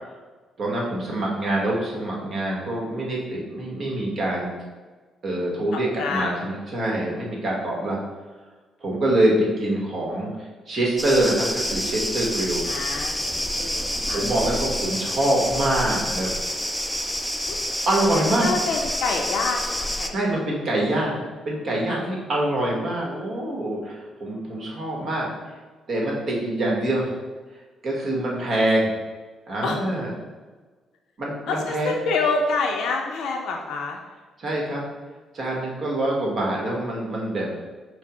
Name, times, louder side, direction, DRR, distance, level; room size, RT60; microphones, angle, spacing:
voice 1, 0.6-4.5 5.2-8.0 8.8-12.7 14.1-16.3 17.9-18.6 20.1-25.3 25.9-27.2 27.8-28.9 29.5-30.1 31.2-31.9 34.4-34.9 35.3-37.6, right 1 dB, 55° right, -3 dB, 1.2 m, -25 dB
voice 2, 5.7-6.3 12.6-13.3 13.6-14.2 17.5-17.6 18.2-20.1 21.9-22.0 29.6-29.8 31.5-34.0, left 4 dB, 80° left, 1 dB, 0.5 m, -27 dB
sound 1, 11.0-20.1, equal, ahead, 0.4 m, -28 dB
5.4 x 2.0 x 4.8 m, 1.4 s
cardioid pair, 90°, 0 cm